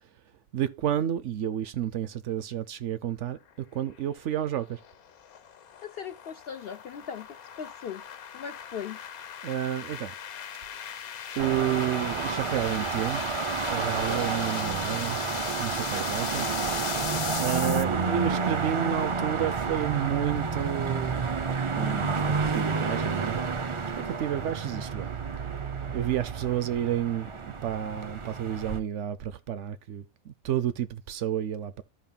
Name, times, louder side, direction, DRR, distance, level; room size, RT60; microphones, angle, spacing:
voice 1, 0.5-4.8 9.4-10.2 11.4-15.2 15.6-16.5 17.4-23.4 23.9-25.1 25.9-31.8, right 10 dB, 65° right, 0.8 m, -31 dB
sound 1, 3.9-17.8, left 8 dB, 90° left, 1.3 m, -38 dB
voice 2, 5.8-8.0 8.3-9.0, left 7 dB, 65° left, 0.6 m, -39 dB
sound 2, 11.4-28.8, right 4 dB, 40° right, 0.4 m, -30 dB
13.5 x 5.3 x 2.2 m
omnidirectional pair, 1.5 m